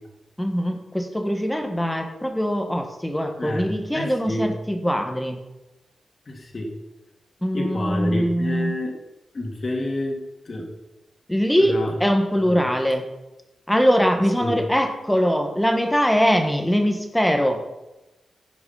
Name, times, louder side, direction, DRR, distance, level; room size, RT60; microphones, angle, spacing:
voice 1, 0.4-5.4 7.4-8.7 11.3-13.0 13.7-17.6, equal, 5° left, 5 dB, 1.4 m, -22 dB
voice 2, 3.4-4.5 6.3-6.7 7.5-8.9 9.3-10.2 10.5-10.7 11.7-11.9 12.5-12.6 14.4-14.5, left 1 dB, 40° left, 1 dB, 2.4 m, -28 dB
16.0 x 5.9 x 5.7 m, 1.0 s
wide cardioid pair, 145°, 0 cm